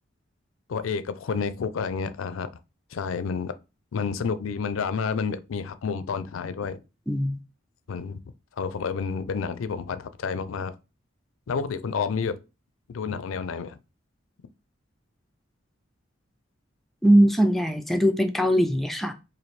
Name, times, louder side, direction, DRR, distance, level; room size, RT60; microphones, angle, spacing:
voice 1, 0.7-2.5 2.9-3.5 3.9-6.8 7.9-8.2 8.6-10.7 11.5-12.4 12.9-13.8, left 5 dB, 85° left, 0.4 m, -29 dB
voice 2, 7.1-7.4 17.0-19.1, equal, ahead, 0.4 m, -21 dB
3.2 x 2.6 x 4.1 m
head